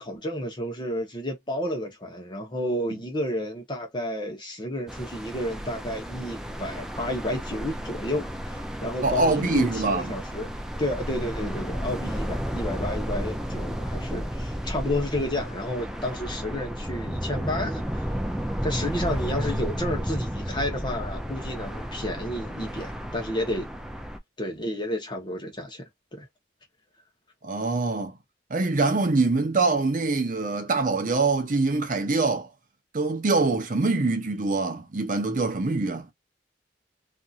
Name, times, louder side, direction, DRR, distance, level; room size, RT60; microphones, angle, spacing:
voice 1, 0.0-10.5 10.8-18.1 18.6-23.7 24.4-25.9 26.2-26.3, left 1 dB, 25° left, 0.9 m, -31 dB
sound 1, 4.9-24.2, equal, 5° right, 0.4 m, -32 dB
voice 2, 9.0-10.1 27.4-28.1 28.5-32.5 32.9-36.1, right 3 dB, 45° right, 0.7 m, -24 dB
2.8 x 2.6 x 2.4 m
head